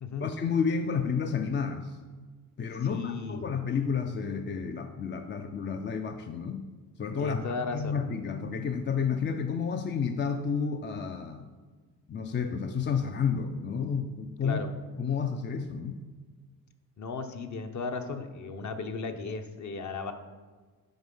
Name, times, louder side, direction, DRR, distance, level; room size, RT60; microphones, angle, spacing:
voice 1, 0.2-1.9 2.6-6.7 7.0-11.5 12.1-14.6 15.0-16.0, left 6 dB, 30° left, 6 dB, 0.4 m, -31 dB
voice 2, 2.8-3.5 7.2-8.0 14.4-14.7 17.0-20.1, left 4 dB, 50° left, 7 dB, 0.8 m, -35 dB
7.9 x 5.1 x 5.4 m, 1.4 s
cardioid pair, 115°, 38 cm